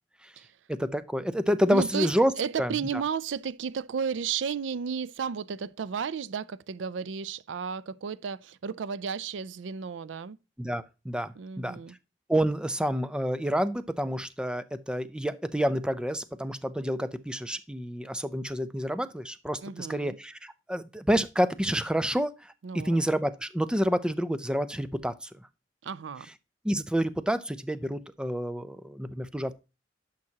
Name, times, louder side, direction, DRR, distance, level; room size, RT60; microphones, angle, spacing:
voice 1, 0.7-2.3 2.6-2.7 10.6-11.8 12.3-22.5 22.8-25.4 26.6-29.5, equal, 5° right, 0.5 m, -28 dB
voice 2, 1.7-2.1 2.4-10.4 11.4-12.0 19.6-20.2 22.6-23.0 25.8-26.3, right 6 dB, 80° right, 0.4 m, -33 dB
11.0 x 5.9 x 2.8 m
head